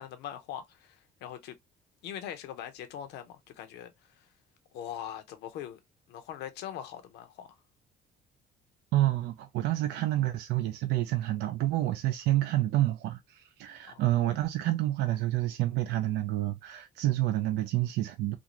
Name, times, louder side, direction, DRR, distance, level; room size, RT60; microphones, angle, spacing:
voice 1, 0.0-1.6 2.0-3.9 4.7-5.8 6.1-7.5 13.9-14.0, left 10 dB, 85° left, 0.6 m, -41 dB
voice 2, 8.9-18.4, right 15 dB, 80° right, 0.4 m, -28 dB
2.6 x 2.4 x 2.9 m
cardioid pair, 110°, 17 cm